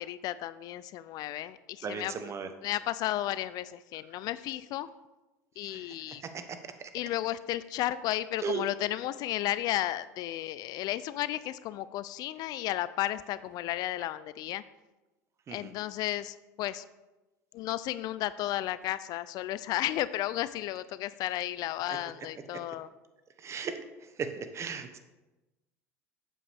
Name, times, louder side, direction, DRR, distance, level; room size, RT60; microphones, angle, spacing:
voice 1, 0.0-2.3 2.6-4.9 5.6-6.2 6.9-14.6 15.5-16.8 17.5-22.9, left 14 dB, 55° left, 16 dB, 0.3 m, -33 dB
voice 2, 1.8-2.5 5.7-5.9 6.2-6.3 6.8-6.9 8.4-8.6 15.5-15.7 23.4-23.8 24.2-25.0, right 6 dB, 35° right, 9 dB, 0.9 m, -36 dB
8.4 x 7.1 x 3.4 m, 1.1 s
hypercardioid pair, 85°, 8 cm